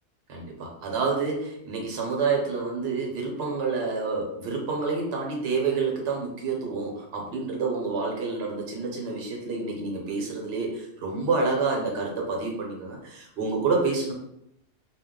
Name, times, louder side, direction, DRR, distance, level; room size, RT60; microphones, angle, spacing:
voice 1, 0.3-14.1, right 4 dB, 65° right, 0 dB, 0.9 m, -28 dB
2.2 x 2.1 x 3.6 m, 0.76 s
omnidirectional pair, 1.2 m